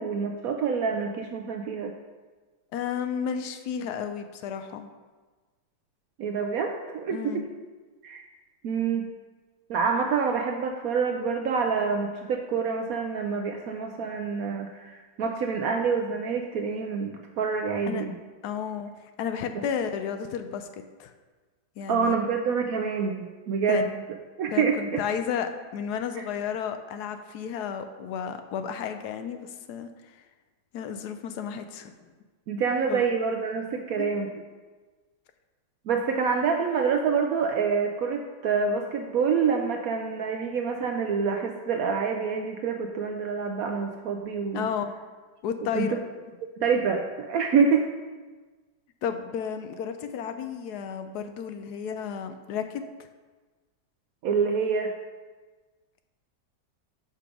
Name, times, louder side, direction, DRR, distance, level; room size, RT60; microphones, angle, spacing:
voice 1, 0.0-1.9 6.2-7.4 8.0-8.2 8.6-9.1 9.7-18.1 19.5-19.6 21.9-23.9 24.4-25.0 32.5-34.3 35.9-44.7 45.7-45.9 46.6-47.9 54.2-54.9, right 5 dB, 70° right, 4 dB, 0.9 m, -27 dB
voice 2, 2.7-4.9 7.1-7.5 17.9-18.0 18.4-21.1 21.8-22.2 23.7-23.8 24.5-30.2 30.7-32.1 32.9-33.1 44.5-44.9 45.4-46.0 49.0-52.8, left 7 dB, 70° left, 8 dB, 1.0 m, -32 dB
6.0 x 5.0 x 5.9 m, 1.3 s
omnidirectional pair, 1.9 m